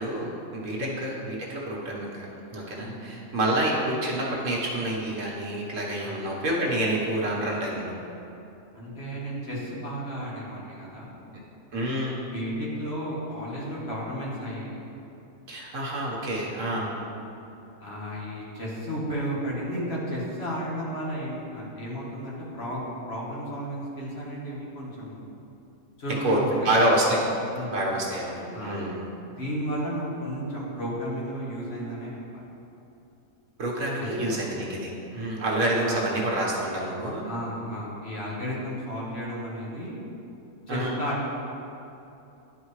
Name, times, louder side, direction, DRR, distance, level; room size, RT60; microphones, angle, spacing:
voice 1, 0.0-2.3 2.5-8.0 11.7-12.2 15.5-16.9 26.2-26.4 26.6-27.2 27.7-29.0 33.6-37.3 40.7-40.9, right 1 dB, 65° right, -4 dB, 1.6 m, -28 dB
voice 2, 8.7-11.2 12.1-14.9 16.7-17.0 17.8-25.2 26.0-26.7 27.0-27.2 27.5-27.8 28.5-28.9 29.4-32.4 34.0-34.4 35.8-36.1 37.2-40.0 40.7-41.3, equal, 50° left, -6 dB, 1.6 m, -33 dB
10.5 x 4.8 x 3.2 m, 2.9 s
omnidirectional pair, 1.5 m